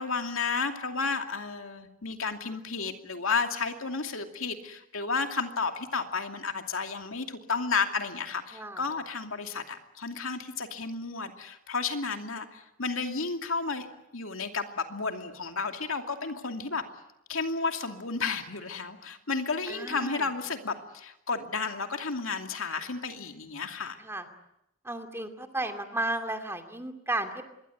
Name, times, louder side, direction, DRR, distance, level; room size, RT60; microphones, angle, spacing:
voice 1, 0.0-13.9 14.1-16.8 17.3-24.0, left 4 dB, 75° left, 5 dB, 2.6 m, -32 dB
voice 2, 8.5-8.9 19.7-20.3 24.0-24.3 24.8-27.5, right 2 dB, 10° right, 6 dB, 2.6 m, -34 dB
26.5 x 22.5 x 9.4 m, 0.83 s
head